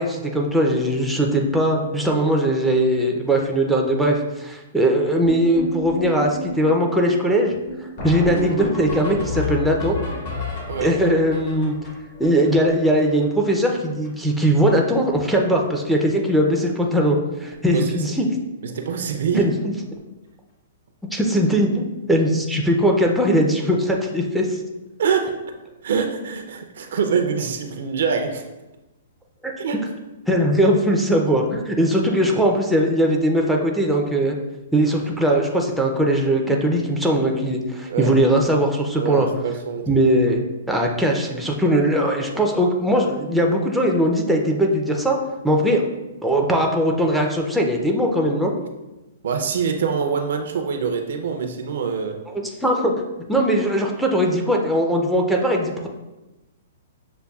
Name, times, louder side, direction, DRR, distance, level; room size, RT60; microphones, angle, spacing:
voice 1, 0.0-7.5 8.0-10.0 10.8-11.7 12.2-18.3 19.4-19.7 21.1-21.8 22.1-24.6 29.4-29.5 30.3-34.3 34.7-39.3 39.9-45.2 45.4-45.8 46.2-48.5 52.6-55.9, equal, ahead, 0 dB, 0.4 m, -20 dB
sound 1, 5.2-13.5 13.7-13.8 14.0-14.3 14.6-15.1 15.4-15.7 16.5-16.6 17.0-17.1 17.4-17.5 19.8-19.9 22.2-22.3, left 2 dB, 55° left, 1.3 m, -31 dB
voice 2, 17.7-18.0 18.6-19.4 25.0-25.3 25.8-28.4 29.6-29.8 37.9-38.1 39.0-40.0 49.2-52.2, right 6 dB, 70° right, 5 dB, 0.5 m, -24 dB
6.6 x 2.2 x 2.3 m, 1.0 s
hypercardioid pair, 145°, 0 cm